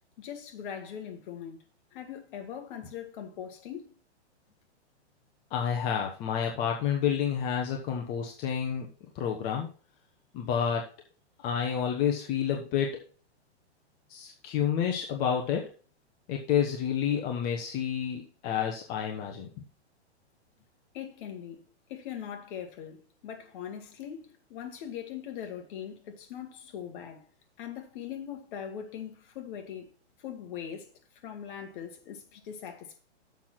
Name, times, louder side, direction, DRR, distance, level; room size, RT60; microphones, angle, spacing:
voice 1, 0.2-1.6 1.9-3.9 20.9-21.6 21.9-27.2 27.6-29.9 30.2-30.9 31.2-33.0, left 9 dB, 45° left, 1.8 m, -41 dB
voice 2, 5.5-8.9 9.1-9.7 10.3-10.9 11.4-13.0 14.1-15.7 16.3-19.5, left 8 dB, 25° left, 1.1 m, -29 dB
7.2 x 6.0 x 6.0 m
hypercardioid pair, 145°, 34 cm